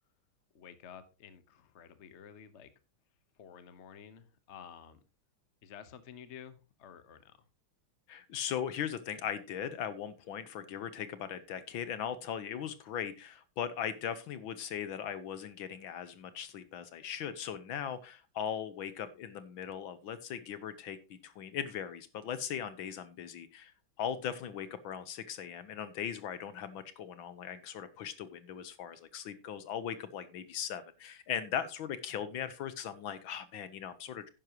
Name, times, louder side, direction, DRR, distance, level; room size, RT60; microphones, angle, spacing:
voice 1, 0.5-2.7 3.4-5.0 5.6-7.4, left 8 dB, 40° left, 12 dB, 1.1 m, -51 dB
voice 2, 8.1-23.7 24.0-34.3, left 9 dB, 70° left, 13 dB, 1.6 m, -39 dB
11.0 x 10.0 x 3.0 m, 0.30 s
omnidirectional pair, 2.3 m